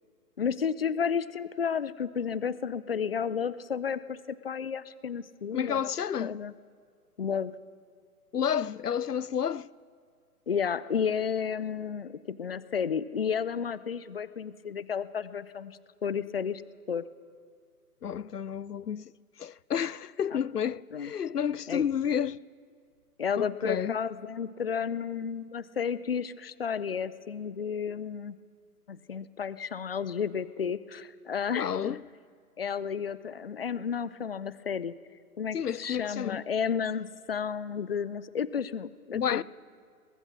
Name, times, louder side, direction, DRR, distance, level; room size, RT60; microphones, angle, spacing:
voice 1, 0.4-5.8 6.2-6.5 7.2-7.5 10.5-16.6 16.9-17.0 20.3-20.4 20.9-21.1 21.7-21.9 23.2-28.4 28.9-32.0 32.6-34.9 35.4-39.4, left 7 dB, 40° left, 0.6 m, -32 dB
voice 2, 5.5-6.4 8.3-9.7 18.0-19.1 19.4-22.4 23.4-24.0 31.6-32.0 35.5-36.4 39.1-39.4, left 8 dB, 80° left, 0.6 m, -30 dB
24.0 x 20.5 x 6.2 m
figure-of-eight pair, 130°, 46 cm